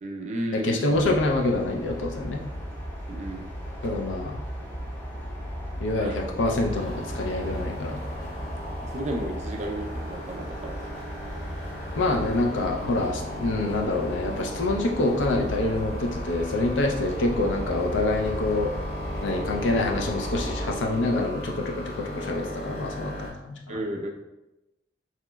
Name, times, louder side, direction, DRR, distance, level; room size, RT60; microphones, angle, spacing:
voice 1, 0.0-1.1 3.1-3.5 5.9-6.4 8.8-10.8 23.7-24.1, right 1 dB, 40° right, 1 dB, 0.4 m, -33 dB
voice 2, 0.5-2.4 3.8-4.4 5.8-8.0 11.9-18.7 19.2-23.8, left 2 dB, 80° left, 2 dB, 0.5 m, -26 dB
sound 1, 0.9-20.8, equal, 10° left, 0.6 m, -36 dB
sound 2, 6.6-23.3, equal, 35° left, 0.9 m, -37 dB
3.1 x 2.8 x 2.2 m, 0.93 s
head